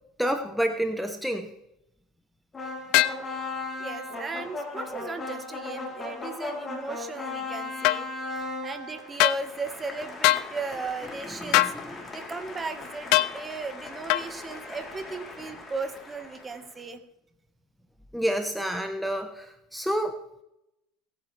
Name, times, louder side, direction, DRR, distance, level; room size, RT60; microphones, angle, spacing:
voice 1, 0.2-1.5 11.4-12.1 18.1-20.2, equal, ahead, 5 dB, 1.2 m, -29 dB
sound 1, 2.5-16.7, left 3 dB, 25° left, 3.9 m, -38 dB
sound 2, 2.9-3.2 7.8-8.0 9.2-9.4 10.2-10.5 11.5-11.8 13.1-13.3 14.1-14.3, left 18 dB, 65° left, 0.5 m, -21 dB
voice 2, 3.8-11.7 12.1-17.0, right 4 dB, 25° right, 8 dB, 1.7 m, -36 dB
21.5 x 9.2 x 3.5 m, 0.84 s
hypercardioid pair, 85°, 0 cm